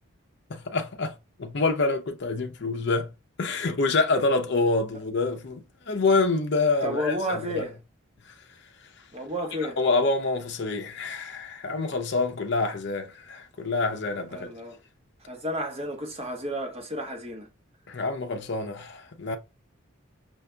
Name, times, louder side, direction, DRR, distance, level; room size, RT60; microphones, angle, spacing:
voice 1, 0.5-1.1 1.4-3.1 3.4-7.6 8.3-8.4 9.8-14.5 17.9-19.4, left 3 dB, 55° left, 0.6 m, -26 dB
voice 2, 6.8-7.7 9.1-9.8 14.3-14.8 15.2-17.5, equal, 30° right, 1.0 m, -32 dB
5.7 x 2.7 x 2.3 m
head